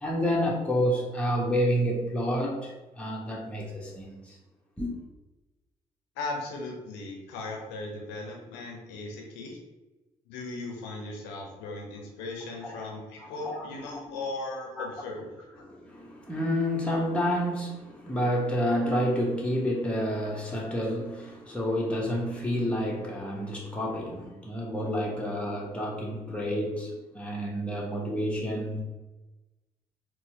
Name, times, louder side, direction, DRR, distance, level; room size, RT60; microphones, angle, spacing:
voice 1, 0.0-4.3 4.8-4.9 12.6-12.9 13.2-14.0 14.8-14.9 15.6-28.8, equal, 5° left, -3 dB, 0.9 m, -29 dB
voice 2, 6.2-9.6 10.3-15.3, left 2 dB, 75° left, 1 dB, 0.6 m, -37 dB
4.1 x 2.2 x 2.7 m, 1.1 s
hypercardioid pair, 40°, 18 cm